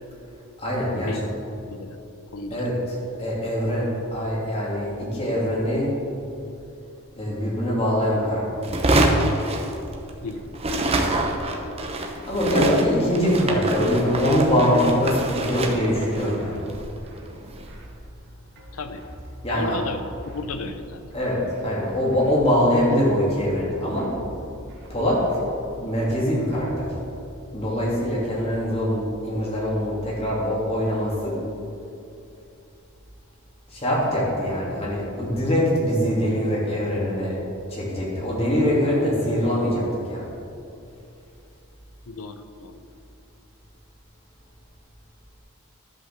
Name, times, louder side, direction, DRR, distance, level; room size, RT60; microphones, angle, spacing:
voice 1, 0.6-1.2 2.5-5.9 7.1-8.6 12.3-16.6 19.4-19.8 21.1-24.1 24.9-25.2 25.7-26.9 27.5-31.4 33.7-37.4 37.7-40.3, equal, 25° left, -5 dB, 2.6 m, -23 dB
voice 2, 2.3-2.7 10.2-10.4 10.7-10.9 18.7-19.0 19.5-21.0 42.1-42.8, left 3 dB, 75° left, 9 dB, 0.7 m, -33 dB
sound 1, 8.6-10.2 10.5-17.7, right 1 dB, 25° right, 0.9 m, -25 dB
sound 2, 10.3-26.9, equal, 50° right, 1.7 m, -45 dB
11.0 x 5.6 x 6.8 m, 2.7 s
head